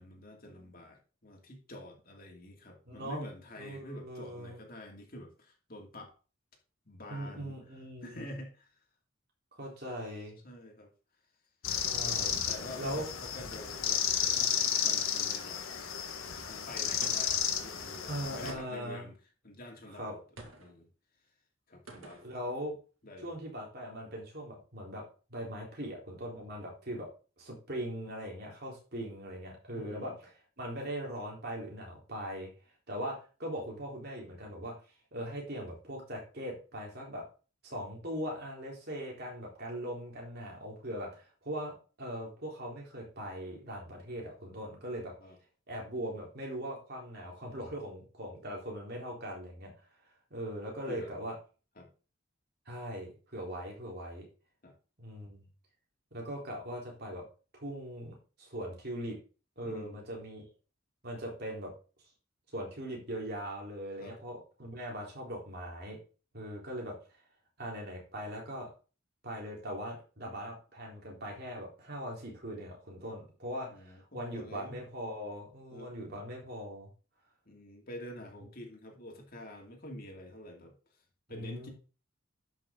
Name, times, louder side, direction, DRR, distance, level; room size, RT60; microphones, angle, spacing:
voice 1, 0.0-6.1 6.9-8.8 10.0-10.1 10.4-10.9 12.5-15.6 16.5-19.2 19.4-20.9 21.7-22.2 23.0-23.3 29.7-30.2 45.2-45.4 50.9-51.1 51.8-51.9 54.6-54.7 59.6-60.1 64.0-64.2 73.7-74.8 75.7-75.9 77.5-80.7 81.3-81.7, left 1 dB, 45° left, 1 dB, 2.5 m, -47 dB
voice 2, 2.9-3.2 3.6-4.6 7.1-8.2 9.5-10.4 11.8-12.3 12.8-13.0 18.1-19.1 19.9-20.1 22.0-22.7 23.2-25.0 25.3-27.1 27.4-32.5 32.9-34.7 35.1-37.2 37.6-45.1 45.7-49.7 50.3-51.3 52.7-54.3 55.0-55.4 56.1-57.2 57.5-59.2 59.6-60.4 61.0-61.7 62.5-66.0 66.3-66.9 67.6-68.7 69.2-76.9 81.3-81.7, equal, 50° right, -2 dB, 3.9 m, -40 dB
sound 1, 11.6-18.5, left 8 dB, 80° left, 1.5 m, -32 dB
sound 2, 14.2-15.1 17.0-17.5 18.5-19.0 20.4-20.7 21.9-22.3, right 2 dB, 80° right, 2.1 m, -50 dB
11.5 x 6.1 x 3.8 m, 0.35 s
head